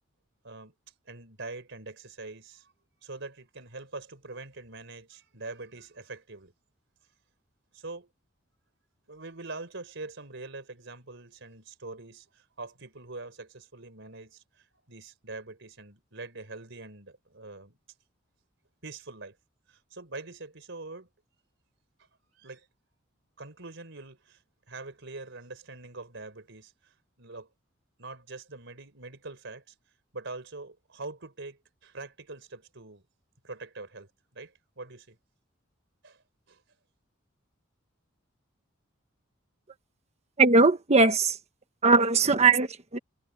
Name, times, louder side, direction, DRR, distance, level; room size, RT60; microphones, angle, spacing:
voice 1, 1.1-2.7 3.0-6.5 7.7-8.1 9.1-17.8 18.8-19.4 19.7-21.1 22.3-22.7 23.4-27.5 28.0-29.8 30.1-33.0 33.4-35.2 36.0-36.6, right 3 dB, 65° right, 4.3 m, -44 dB
voice 2, 40.4-41.4 41.8-43.0, right 4 dB, 35° right, 1.2 m, -20 dB
head